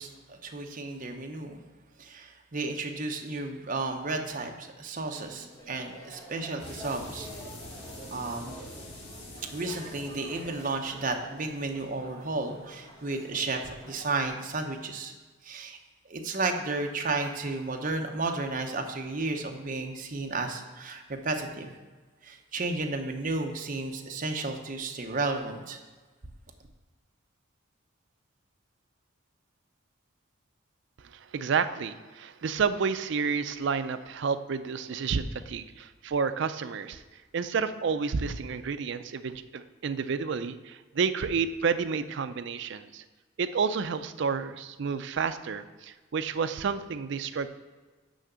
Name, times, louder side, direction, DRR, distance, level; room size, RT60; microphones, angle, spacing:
voice 1, 0.0-1.6 2.0-7.3 8.1-8.6 9.5-15.1 15.4-15.8 16.1-21.7 22.2-25.8, right 3 dB, 40° right, 4 dB, 0.8 m, -33 dB
sound 1, 5.0-14.3, equal, 20° left, 1.5 m, -49 dB
sound 2, 6.6-13.1, left 1 dB, 55° left, 1.8 m, -46 dB
voice 2, 31.0-37.0 37.3-43.0 43.4-47.5, right 5 dB, 60° right, 11 dB, 0.4 m, -30 dB
6.3 x 5.8 x 6.7 m, 1.3 s
head